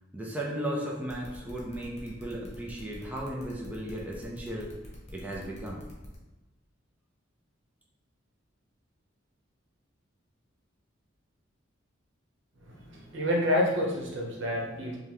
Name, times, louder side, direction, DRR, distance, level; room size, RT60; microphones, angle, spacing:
voice 1, 0.1-4.7 5.1-5.8, right 1 dB, 10° right, -3 dB, 0.5 m, -35 dB
sound 1, 1.1-6.1, left 1 dB, 35° left, 1.2 m, -49 dB
voice 2, 12.7-15.0, left 1 dB, 65° right, -1 dB, 1.0 m, -28 dB
5.6 x 2.3 x 3.3 m, 1.1 s
head